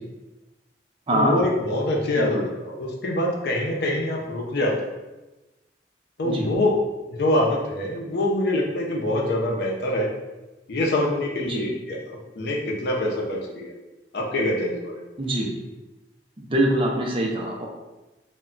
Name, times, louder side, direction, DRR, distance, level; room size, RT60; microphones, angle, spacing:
voice 1, 1.1-4.9 6.2-6.8 7.1-10.1 10.7-12.0 12.4-13.7 14.1-15.0, left 1 dB, 65° left, -1 dB, 0.5 m, -25 dB
voice 2, 15.2-15.5 16.4-17.7, right 1 dB, 30° right, -1 dB, 0.5 m, -24 dB
2.2 x 2.2 x 3.7 m, 1.1 s
head